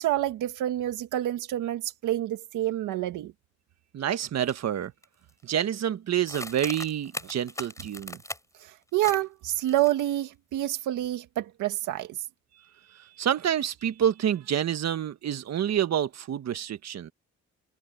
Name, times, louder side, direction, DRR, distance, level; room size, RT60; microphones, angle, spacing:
voice 1, 0.0-3.3 8.6-12.2, right 14 dB, 90° right, 1.9 m, -28 dB
voice 2, 3.9-4.9 5.4-8.2 12.9-17.1, right 10 dB, 60° right, 1.5 m, -28 dB
sound 1, 4.5-4.6 5.0-5.4 6.3-8.6 9.0-9.2 9.5-10.2, left 1 dB, 10° left, 6.8 m, -39 dB
cardioid pair, 90°, 30 cm